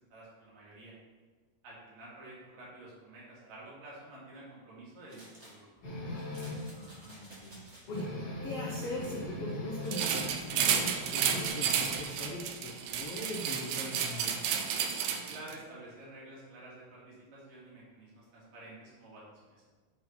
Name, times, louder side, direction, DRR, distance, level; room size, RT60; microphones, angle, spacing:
voice 1, 0.1-0.9 1.6-5.7 15.1-19.7, right 2 dB, 65° right, -6 dB, 3.8 m, -50 dB
sound 1, 5.1-5.6 6.2-8.0 9.8-11.9, right 1 dB, 40° right, 0.9 m, -53 dB
sound 2, 5.8-6.7 7.2-7.3 7.6-7.7 7.9-10.2 10.5-11.5, left 2 dB, 30° left, 2.4 m, -40 dB
voice 2, 6.7-8.1 8.4-14.5, left 1 dB, 85° left, -3 dB, 1.3 m, -41 dB
sound 3, 9.9-15.5, right 8 dB, 80° right, 1.9 m, -32 dB
11.5 x 4.0 x 4.4 m, 1.4 s
omnidirectional pair, 4.3 m